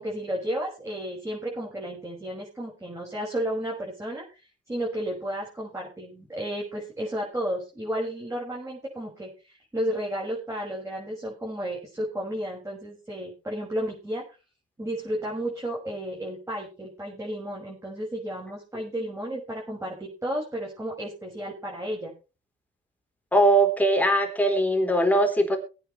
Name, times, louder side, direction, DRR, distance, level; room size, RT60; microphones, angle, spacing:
voice 1, 0.0-4.4 4.7-14.2 14.8-22.1, equal, 15° right, -4 dB, 6.3 m, -32 dB
voice 2, 23.3-25.6, right 1 dB, 10° left, 4 dB, 4.0 m, -21 dB
21.5 x 9.2 x 3.3 m, 0.32 s
cardioid pair, 90°, 20 cm